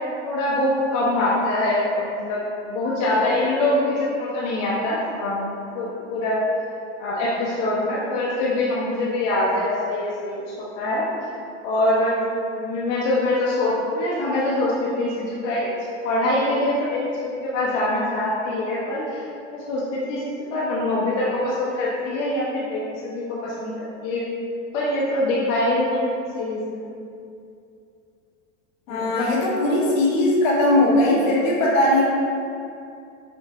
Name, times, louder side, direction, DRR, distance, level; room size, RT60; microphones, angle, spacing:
voice 1, 0.0-6.4 7.0-11.0 11.6-12.1 12.6-15.7 16.0-19.3 19.5-20.2 20.5-23.7 24.0-24.3 24.7-26.8 28.9-29.3 29.6-29.8, left 1 dB, 65° left, -6 dB, 0.8 m, -24 dB
voice 2, 28.9-32.0, left 1 dB, 80° left, -5 dB, 1.2 m, -19 dB
6.0 x 2.1 x 2.9 m, 2.5 s
hypercardioid pair, 110°, 39 cm